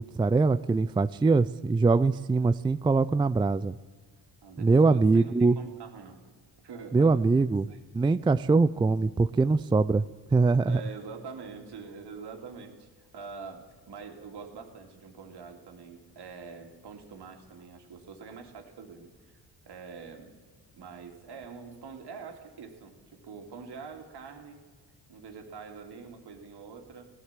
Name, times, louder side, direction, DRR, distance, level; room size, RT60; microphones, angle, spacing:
voice 1, 0.0-3.7 4.6-5.6 6.9-7.7 7.9-10.0 10.3-10.8, right 3 dB, 10° right, 14 dB, 0.4 m, -23 dB
voice 2, 4.4-6.3 6.6-7.8 10.7-20.4 20.7-24.6 25.1-27.1, right 5 dB, 65° right, 3 dB, 2.6 m, -45 dB
16.5 x 11.0 x 7.4 m, 1.4 s
supercardioid pair, 65°, 43 cm